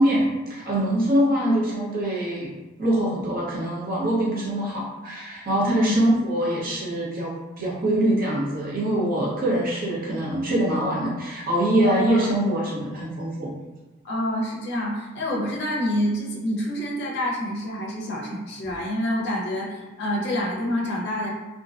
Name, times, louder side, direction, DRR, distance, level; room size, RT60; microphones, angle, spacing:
voice 1, 0.0-2.5 2.8-13.5, right 1 dB, 45° right, -5 dB, 0.7 m, -24 dB
voice 2, 11.8-12.2 14.0-21.3, left 1 dB, 55° left, -3 dB, 0.5 m, -27 dB
2.5 x 2.1 x 2.4 m, 1.2 s
head